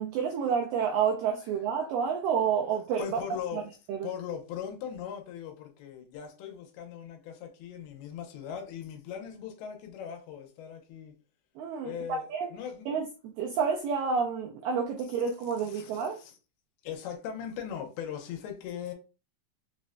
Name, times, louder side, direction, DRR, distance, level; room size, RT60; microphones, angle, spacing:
voice 1, 0.0-3.2 3.9-4.1 11.6-11.9 12.3-12.5 12.9-13.1 13.4-16.2, right 6 dB, 90° right, 2.0 m, -29 dB
voice 2, 3.0-3.6 4.0-11.1 11.8-12.9 15.6-16.4 16.8-18.9, left 8 dB, 90° left, 2.7 m, -39 dB
6.1 x 2.1 x 2.5 m
omnidirectional pair, 4.5 m